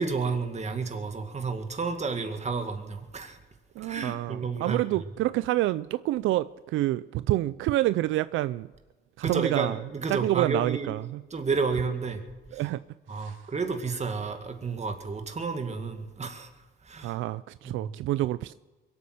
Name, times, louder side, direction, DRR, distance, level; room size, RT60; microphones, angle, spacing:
voice 1, 0.0-3.4 3.8-5.0 9.2-10.9 11.3-12.2 12.5-12.6 13.1-16.5 16.9-17.2 17.6-17.9, right 4 dB, 35° right, 2.1 m, -31 dB
voice 2, 3.8-8.7 9.2-9.8 10.1-11.2 12.5-12.8 13.2-13.3 17.0-18.5, right 15 dB, 85° right, 0.4 m, -27 dB
22.5 x 8.7 x 6.6 m
cardioid pair, 90°, 20 cm